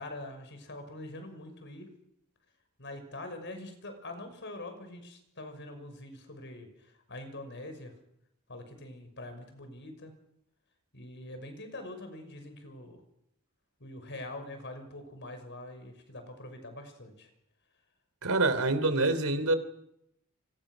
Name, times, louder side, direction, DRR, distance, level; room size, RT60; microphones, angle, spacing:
voice 1, 0.0-1.9 2.8-7.9 8.5-10.1 10.9-13.0 13.8-17.3, left 1 dB, 55° left, 7 dB, 6.1 m, -44 dB
voice 2, 18.2-19.6, right 2 dB, 90° right, 12 dB, 3.2 m, -26 dB
29.0 x 25.0 x 6.4 m, 0.80 s
head